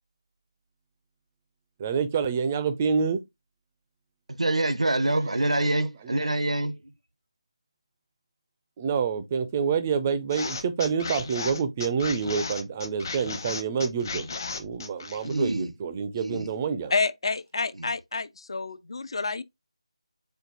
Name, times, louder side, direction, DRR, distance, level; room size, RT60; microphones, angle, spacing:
voice 1, 1.8-3.2 5.1-6.3 8.8-14.3 14.5-16.9, right 6 dB, 20° right, 0.4 m, -28 dB
voice 2, 4.3-6.8 15.2-15.7 16.1-16.5 17.8-17.9, right 2 dB, 80° right, 0.6 m, -26 dB
sound 1, 10.3-15.5, left 4 dB, 35° left, 0.8 m, -35 dB
voice 3, 16.9-19.4, left 4 dB, 55° left, 0.4 m, -29 dB
4.4 x 2.4 x 3.8 m
figure-of-eight pair, 165°, 3 cm